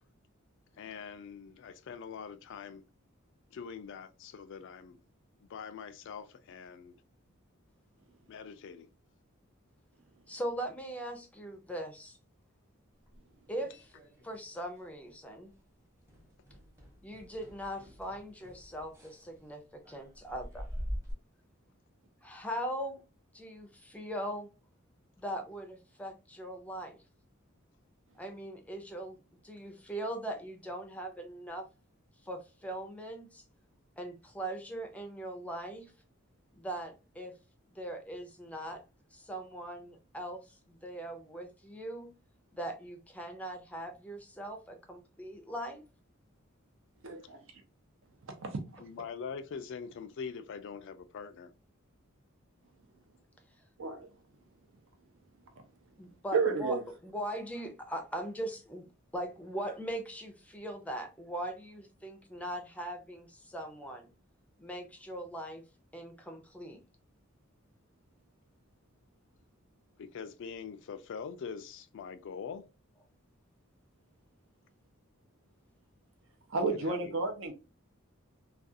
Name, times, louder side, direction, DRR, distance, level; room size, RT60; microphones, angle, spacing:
voice 1, 0.8-2.8 3.5-5.0 5.4-7.0 8.3-8.9 48.8-51.5 70.0-72.6 76.7-77.2, left 6 dB, 60° left, 0.3 m, -43 dB
voice 2, 10.3-12.2 13.5-13.9 14.2-15.5 17.0-20.7 22.2-23.0 23.3-24.5 25.2-27.0 28.2-31.7 32.2-33.4 34.0-35.9 36.5-37.3 37.7-38.8 39.1-42.1 42.5-45.8 56.0-56.8 57.0-58.8 59.1-64.1 64.6-65.6 65.9-66.8, right 1 dB, 5° left, 0.5 m, -40 dB
sound 1, 13.1-14.5 14.8-15.1 15.5-15.6 16.1-21.1, equal, 15° right, 0.9 m, -45 dB
voice 3, 47.0-47.4 48.3-48.8 53.8-54.1 56.3-56.8 76.5-77.5, right 4 dB, 65° right, 0.6 m, -32 dB
2.4 x 2.3 x 2.6 m
head